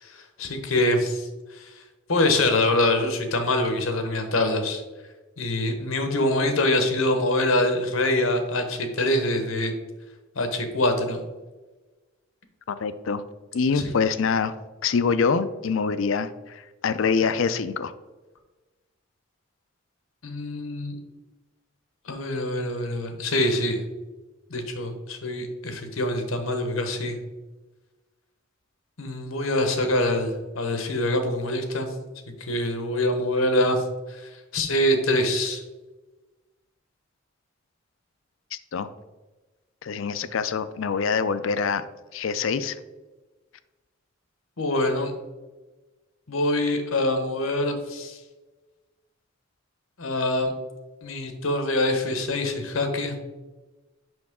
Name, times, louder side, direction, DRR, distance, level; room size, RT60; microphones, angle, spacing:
voice 1, 0.0-1.7 2.1-4.8 5.4-9.7 10.3-11.2 13.7-13.9 20.2-20.9 22.1-23.8 24.5-27.2 29.0-31.9 32.4-33.8 34.1-35.6 44.6-45.1 46.3-48.2 50.0-50.5 51.0-53.1, left 1 dB, 85° left, 6 dB, 1.1 m, -25 dB
voice 2, 12.7-13.2 13.5-14.5 14.8-17.9 38.7-38.9 39.8-41.9 42.1-42.8, left 5 dB, 70° left, 13 dB, 0.4 m, -25 dB
6.2 x 5.5 x 3.6 m, 1.2 s
head